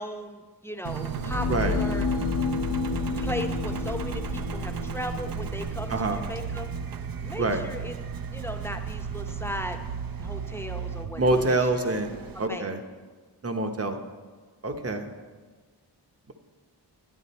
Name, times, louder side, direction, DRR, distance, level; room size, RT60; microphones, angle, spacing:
voice 1, 0.0-2.1 3.1-6.7 7.2-8.0 8.3-9.8 10.2-11.9 12.3-12.7, equal, 5° left, 4 dB, 0.7 m, -37 dB
Engine, 0.8-12.5, right 6 dB, 55° right, 0.6 m, -34 dB
sound 1, 0.9-6.9, left 6 dB, 60° left, 0.6 m, -31 dB
voice 2, 5.9-6.2 7.4-7.6 11.2-12.1 12.4-12.8 13.4-14.0 14.6-15.1, right 2 dB, 35° right, 6 dB, 0.9 m, -26 dB
11.0 x 9.1 x 4.2 m, 1.4 s
wide cardioid pair, 120°, 41 cm